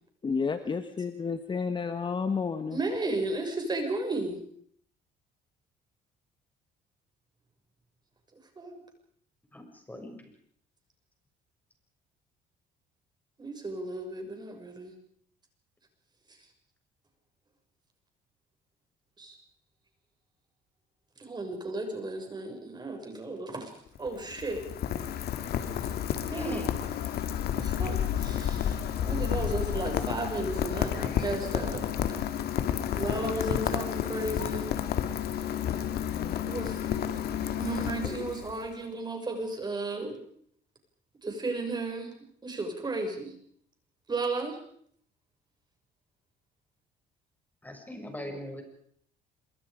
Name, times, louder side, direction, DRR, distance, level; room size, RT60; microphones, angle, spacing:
voice 1, 0.2-2.8, left 5 dB, 30° left, 9 dB, 1.4 m, -31 dB
voice 2, 2.7-4.4 8.6-8.8 13.4-14.9 19.2-19.4 21.2-23.7 24.0-24.6 25.7-25.8 26.3-26.6 27.5-31.8 32.9-34.7 36.5-37.2 37.6-40.2 41.2-42.1 42.4-43.3 44.1-44.6, right 2 dB, 25° right, 4 dB, 6.4 m, -34 dB
voice 3, 9.5-10.1 26.3-26.7 38.0-38.2 47.6-48.6, equal, 10° left, 3 dB, 7.0 m, -39 dB
Rain, 23.9-38.7, left 10 dB, 70° left, 2.3 m, -31 dB
27.0 x 24.0 x 5.2 m, 0.65 s
cardioid pair, 110°, 17 cm